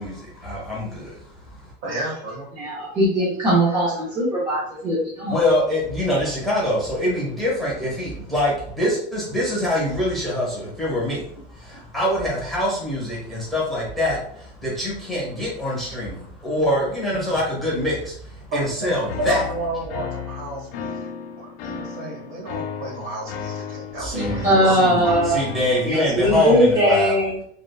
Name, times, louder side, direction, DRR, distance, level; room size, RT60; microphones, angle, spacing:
voice 1, 0.0-1.7 5.3-19.5 24.0-27.2, left 1 dB, ahead, -6 dB, 0.8 m, -24 dB
voice 2, 1.8-2.6 16.5-16.6 18.5-21.1 21.4-25.3, right 1 dB, 45° right, -2 dB, 1.1 m, -32 dB
voice 3, 2.6-5.3 24.1-25.4 25.8-27.4, equal, 15° right, -7 dB, 0.4 m, -20 dB
sound 1, 19.1-25.9, left 6 dB, 75° left, 0.7 m, -34 dB
3.4 x 2.3 x 2.2 m, 0.66 s
supercardioid pair, 165°, 30 cm